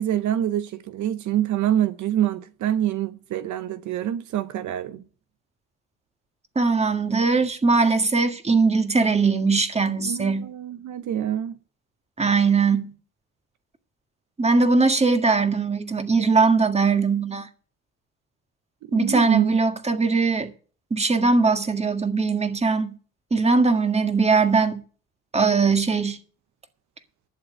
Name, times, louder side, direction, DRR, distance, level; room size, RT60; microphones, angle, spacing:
voice 1, 0.0-5.0 10.0-11.5 18.9-19.5, right 11 dB, 75° right, 0.8 m, -26 dB
voice 2, 6.6-10.5 12.2-12.9 14.4-17.5 18.9-20.5 20.9-22.9 23.3-24.8 25.3-26.2, right 4 dB, 20° right, 1.7 m, -20 dB
11.5 x 7.4 x 8.0 m
cardioid pair, 90°, 30 cm